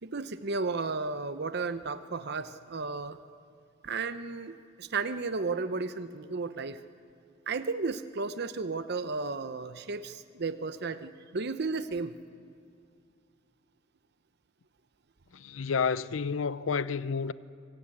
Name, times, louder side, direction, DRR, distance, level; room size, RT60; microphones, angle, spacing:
voice 1, 0.0-3.2 3.8-6.8 7.5-12.1, right 4 dB, 55° right, 0.8 m, -33 dB
voice 2, 15.3-17.3, left 5 dB, 80° left, 0.6 m, -30 dB
26.0 x 18.0 x 8.6 m
head